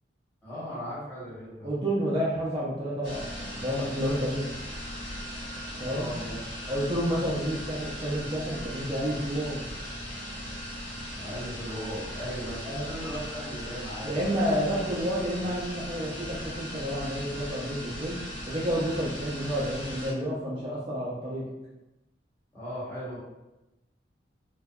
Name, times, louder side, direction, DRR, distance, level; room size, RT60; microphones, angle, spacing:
voice 1, 0.4-1.7 5.8-6.6 11.2-14.9 22.5-23.2, equal, 10° left, -10 dB, 1.0 m, -38 dB
voice 2, 1.6-4.5 5.8-6.1 6.7-9.6 12.6-12.9 14.0-18.2 18.5-21.5, equal, 30° right, -7 dB, 0.4 m, -30 dB
sound 1, 3.0-20.1, equal, 80° left, 1.0 m, -38 dB
2.6 x 2.1 x 2.3 m, 0.98 s
head